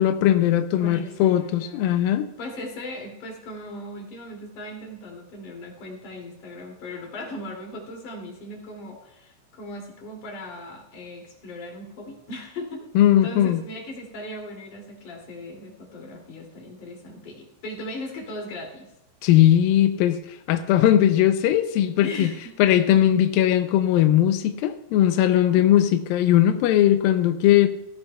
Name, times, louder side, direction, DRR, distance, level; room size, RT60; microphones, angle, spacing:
voice 1, 0.0-2.3 13.0-13.6 19.2-22.3 22.6-27.7, left 12 dB, 85° left, 8 dB, 2.0 m, -19 dB
voice 2, 0.8-1.9 2.4-12.9 13.2-18.9 22.0-22.5 25.6-26.1, left 1 dB, 50° left, -1 dB, 3.9 m, -38 dB
16.5 x 16.0 x 2.3 m, 0.85 s
omnidirectional pair, 4.9 m